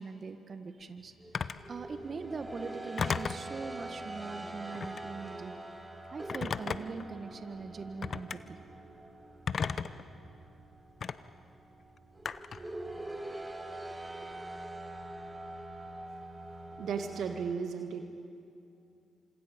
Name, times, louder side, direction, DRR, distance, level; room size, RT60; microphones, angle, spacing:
voice 1, 0.0-5.5 6.1-8.6, right 4 dB, 50° right, 8 dB, 1.7 m, -42 dB
sound 1, 1.1-17.5, right 2 dB, 20° right, 3.6 m, -44 dB
Telephone, 1.3-1.7 3.0-3.5 4.7-5.1 6.3-7.0 8.0-8.4 9.5-10.0 11.0-11.2 12.3-12.7, left 6 dB, 55° left, 0.8 m, -34 dB
voice 2, 16.8-18.1, right 6 dB, 70° right, 5 dB, 1.6 m, -35 dB
29.5 x 26.5 x 5.3 m, 2.6 s
hypercardioid pair, 45°, 0 cm